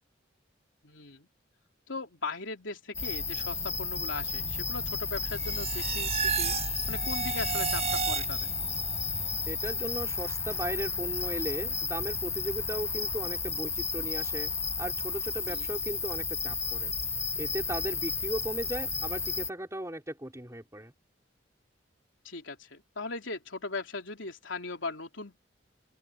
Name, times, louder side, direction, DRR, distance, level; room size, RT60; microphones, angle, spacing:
voice 1, 0.8-1.3 1.9-6.6 6.9-8.4 15.5-15.7 22.2-25.4, left 3 dB, 80° left, 3.3 m, -38 dB
sound 1, 2.9-19.5, left 4 dB, 15° left, 0.9 m, -33 dB
sound 2, 5.3-8.7, right 7 dB, 35° right, 7.7 m, -32 dB
voice 2, 9.5-14.5 14.8-16.9 17.4-20.9, right 1 dB, 15° right, 5.2 m, -37 dB
open air
head